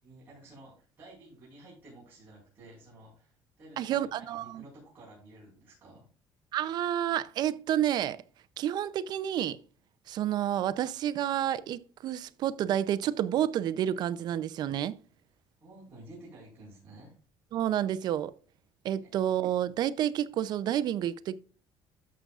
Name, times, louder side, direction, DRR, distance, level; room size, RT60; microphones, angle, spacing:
voice 1, 0.0-6.1 15.6-17.2 19.0-19.1, right 1 dB, 20° right, 4.7 m, -52 dB
voice 2, 3.8-4.6 6.5-8.2 8.6-9.6 10.1-15.0 17.5-18.3 18.8-21.4, right 11 dB, 50° right, 0.5 m, -29 dB
12.5 x 6.7 x 2.4 m
cardioid pair, 170°, 9 cm